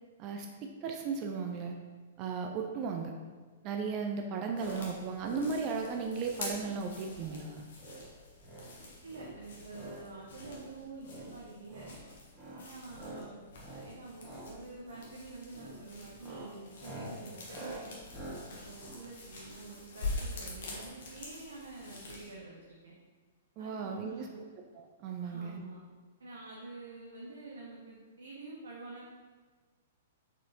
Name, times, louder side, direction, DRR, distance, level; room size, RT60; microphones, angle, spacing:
voice 1, 0.2-1.7 2.2-3.1 3.6-7.7 23.6-24.4 24.7-25.6, right 5 dB, 35° right, 3 dB, 0.4 m, -36 dB
sound 1, 4.5-4.8 5.1-5.5 5.8-6.1 6.5-6.7 7.1-7.4 7.7-8.0 8.4-8.7 9.1-10.0 10.3-10.6 11.0-11.3 11.6-11.9 12.3-12.6 12.9-13.2 13.6-13.9 14.2-14.5 14.8-15.1 15.5-15.8 16.1-19.8 20.6-20.9 21.1-21.2 21.4-21.5, right 1 dB, 15° right, 1.5 m, -47 dB
sound 2, 4.6-22.3, left 2 dB, 60° left, 1.1 m, -46 dB
voice 2, 9.0-12.0 12.5-13.4 13.6-17.9 18.5-22.9 23.6-24.4 25.2-25.8 26.2-29.0, right 3 dB, 70° right, -4 dB, 0.7 m, -48 dB
4.5 x 4.1 x 2.7 m, 1.4 s
figure-of-eight pair, 110°, 0 cm